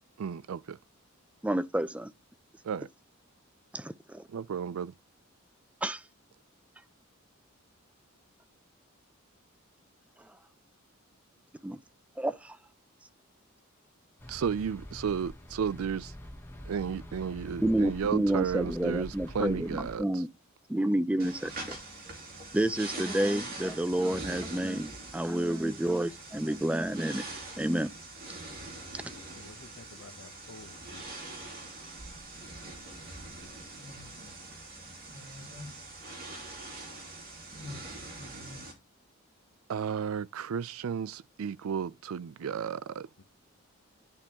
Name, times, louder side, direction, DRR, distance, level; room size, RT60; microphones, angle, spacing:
voice 1, 0.2-0.8 2.6-2.9 4.3-4.9 14.3-16.1 16.6-20.2 39.7-43.1, right 7 dB, 80° right, 0.4 m, -33 dB
voice 2, 1.4-2.1 3.7-4.2 5.8-6.0 11.6-11.8 12.2-12.6 17.6-20.3 20.7-21.8 22.5-27.2 27.6-27.9, right 1 dB, 5° right, 0.4 m, -29 dB
sound 1, 14.2-20.0, equal, 10° left, 1.0 m, -45 dB
sound 2, 21.2-38.7, right 2 dB, 45° right, 2.5 m, -43 dB
voice 3, 29.3-31.1 43.2-43.3, left 3 dB, 80° left, 0.7 m, -51 dB
10.5 x 3.6 x 2.9 m
head